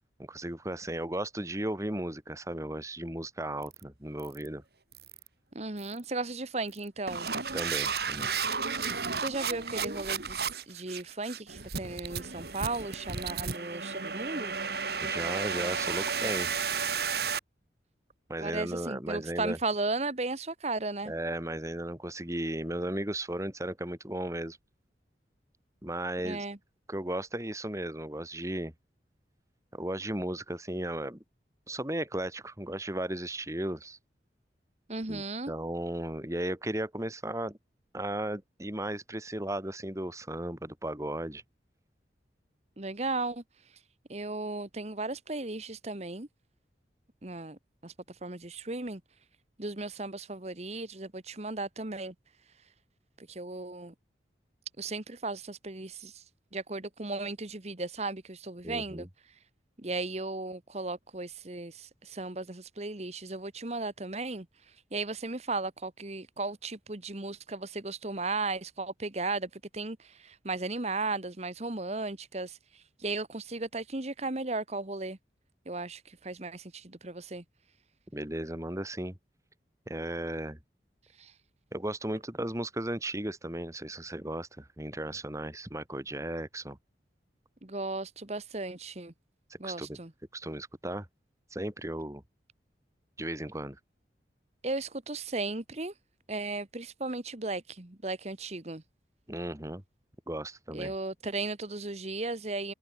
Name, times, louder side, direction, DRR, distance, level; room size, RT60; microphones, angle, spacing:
voice 1, 0.3-4.6 7.5-8.3 15.0-16.5 18.3-19.6 21.1-24.6 25.8-26.4 26.9-28.7 29.7-31.2 31.7-34.0 35.1-37.6 37.9-41.4 58.6-59.1 78.1-79.2 79.9-80.6 81.7-86.8 89.6-90.0 90.3-91.1 91.5-92.2 93.2-93.8 99.3-99.8 100.3-100.9, right 1 dB, 15° right, 2.3 m, -35 dB
sound 1, 3.6-3.8 4.2-4.5 4.9-5.3 5.8-6.0 6.7-17.4, right 5 dB, 60° right, 3.3 m, -33 dB
voice 2, 5.5-7.3 9.2-14.6 18.4-21.1 26.2-26.6 34.9-35.5 42.8-43.8 44.1-46.3 47.2-49.0 49.6-52.1 53.2-53.9 54.8-56.2 56.5-59.4 59.8-75.2 75.7-77.4 81.1-81.3 87.6-89.1 89.6-90.1 94.6-95.9 96.3-98.8 100.7-102.7, right 3 dB, 35° right, 1.4 m, -36 dB
head